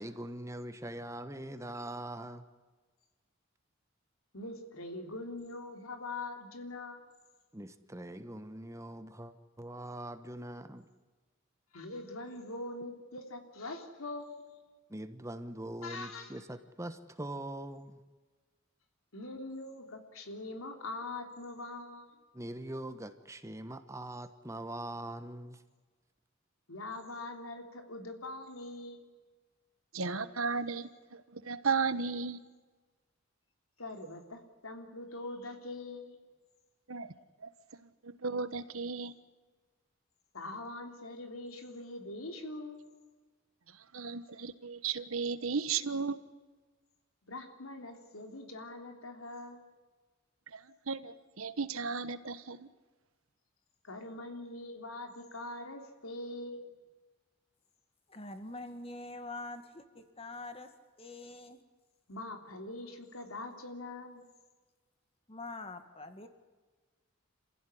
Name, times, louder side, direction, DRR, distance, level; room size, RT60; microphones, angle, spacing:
voice 1, 0.0-2.4 7.5-10.9 14.9-18.0 22.3-25.6, right 1 dB, 15° right, 10 dB, 1.2 m, -42 dB
voice 2, 4.3-7.1 11.7-14.6 15.8-16.4 19.1-22.1 26.7-29.0 33.8-36.2 40.3-42.9 47.2-49.6 53.8-56.7 62.1-64.3, left 2 dB, 90° left, 4 dB, 3.4 m, -43 dB
voice 3, 29.9-32.4 36.9-37.1 37.4-37.5 37.8-39.1 43.9-46.2 50.5-52.7, right 5 dB, 85° right, 13 dB, 1.3 m, -35 dB
voice 4, 58.1-61.6 65.3-66.3, left 2 dB, 30° left, 8 dB, 2.0 m, -45 dB
28.0 x 15.5 x 9.9 m, 1.3 s
head